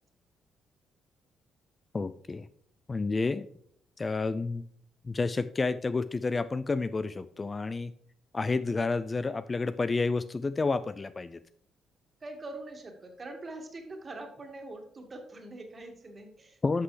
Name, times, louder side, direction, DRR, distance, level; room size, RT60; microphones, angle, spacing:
voice 1, 1.9-2.5 2.9-3.5 4.0-4.6 5.0-7.9 8.3-11.4 16.6-16.8, left 3 dB, 30° left, 13 dB, 0.3 m, -30 dB
voice 2, 12.2-16.6, right 2 dB, 35° right, 3 dB, 1.8 m, -43 dB
11.0 x 6.0 x 3.2 m, 0.64 s
cardioid pair, 90°, 0 cm